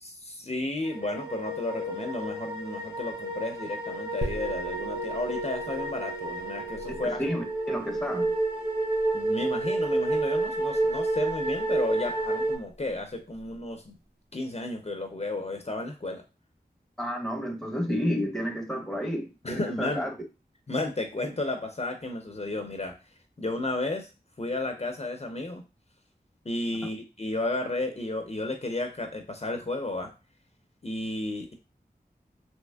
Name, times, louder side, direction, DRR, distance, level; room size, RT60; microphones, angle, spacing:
voice 1, 0.0-7.2 9.1-14.0 14.3-16.2 19.4-20.1 20.7-23.0 23.4-24.1 24.4-25.6 26.4-30.1 30.8-31.5, left 2 dB, 40° left, 0.5 m, -33 dB
sound 1, 0.8-12.6, right 2 dB, 30° right, 1.6 m, -30 dB
sound 2, 4.2-13.6, right 4 dB, 75° right, 0.5 m, -42 dB
voice 2, 7.2-8.3 17.0-20.1, equal, ahead, 0.7 m, -31 dB
3.3 x 2.9 x 2.2 m
wide cardioid pair, 45°, 17 cm